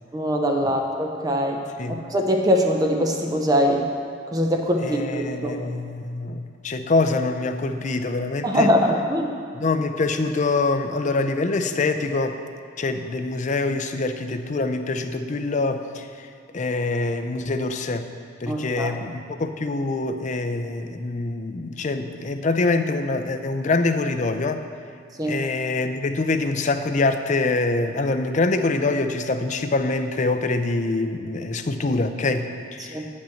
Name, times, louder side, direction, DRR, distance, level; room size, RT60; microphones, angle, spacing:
voice 1, 0.1-1.6 1.9-3.8 4.3-5.6 8.4-9.3 18.5-19.0 25.2-25.4 32.9-33.0, equal, 20° right, 2 dB, 0.6 m, -22 dB
voice 2, 4.8-8.7 9.5-12.4 12.8-16.3 16.5-18.1 18.4-24.6 25.2-33.0, left 3 dB, 40° left, 8 dB, 0.5 m, -25 dB
9.0 x 5.3 x 7.0 m, 2.2 s
head